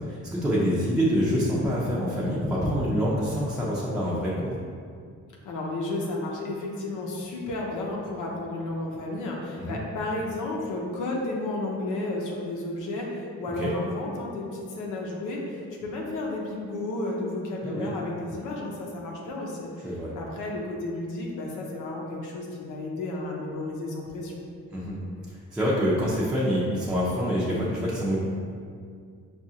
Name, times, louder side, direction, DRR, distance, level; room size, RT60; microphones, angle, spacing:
voice 1, 0.0-4.5 9.6-9.8 13.5-13.8 17.6-17.9 19.8-20.1 24.7-25.0 25.5-28.2, equal, 5° right, -8 dB, 0.6 m, -26 dB
voice 2, 5.4-24.4, left 2 dB, 80° left, -2 dB, 0.7 m, -32 dB
4.7 x 2.4 x 2.8 m, 2.2 s
cardioid pair, 90°, 30 cm